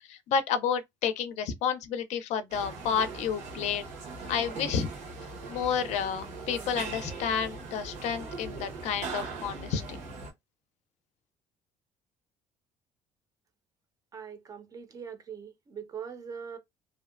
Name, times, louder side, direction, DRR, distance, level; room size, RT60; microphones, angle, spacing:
voice 1, 0.1-3.8 4.3-4.9 5.5-10.0, left 7 dB, 70° left, 0.4 m, -30 dB
sound 1, 2.5-10.3, right 3 dB, 85° right, 1.1 m, -40 dB
voice 2, 14.1-16.6, right 7 dB, 30° right, 0.5 m, -42 dB
2.6 x 2.1 x 2.4 m
cardioid pair, 140°, 12 cm